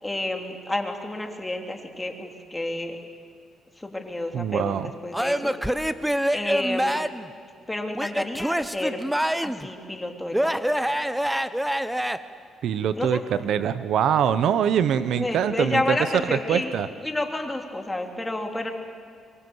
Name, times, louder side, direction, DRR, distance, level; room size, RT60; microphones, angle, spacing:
voice 1, 0.0-3.0 3.8-5.5 6.3-7.0 7.7-9.0 9.4-10.6 13.0-13.2 15.0-16.7 17.0-18.7, left 2 dB, 15° left, 3 dB, 3.0 m, -30 dB
voice 2, 4.3-4.9 12.6-16.0 16.3-16.9, right 8 dB, 75° right, 13 dB, 0.9 m, -23 dB
Male speech man speaking / Yell / Laughter, 5.1-7.3 8.0-9.7 10.3-12.2, equal, 5° right, 0.9 m, -25 dB
24.5 x 24.0 x 8.0 m, 2.2 s
cardioid pair, 90°, 0 cm